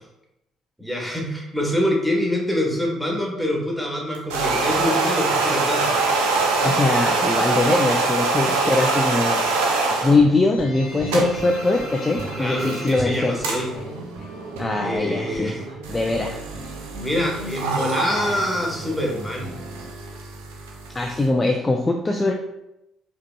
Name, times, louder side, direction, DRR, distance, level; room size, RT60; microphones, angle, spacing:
voice 1, 0.8-5.9 12.4-13.7 14.8-15.6 17.0-19.5, left 1 dB, 5° left, -1 dB, 1.2 m, -25 dB
sound 1, 4.1-10.2 10.8-21.3, right 3 dB, 70° right, 0.5 m, -25 dB
voice 2, 6.6-9.4 10.0-13.4 14.6-15.5 15.9-16.4 20.9-22.3, left 2 dB, 20° left, 2 dB, 0.4 m, -21 dB
sound 2, 8.7-9.2 9.5-14.4 14.7-15.7 16.0-18.8, left 1 dB, 65° left, 0.7 m, -39 dB
sound 3, 10.0-19.9, right 1 dB, 55° right, 1.3 m, -38 dB
4.7 x 2.9 x 2.2 m, 0.88 s
figure-of-eight pair, 50°, 0 cm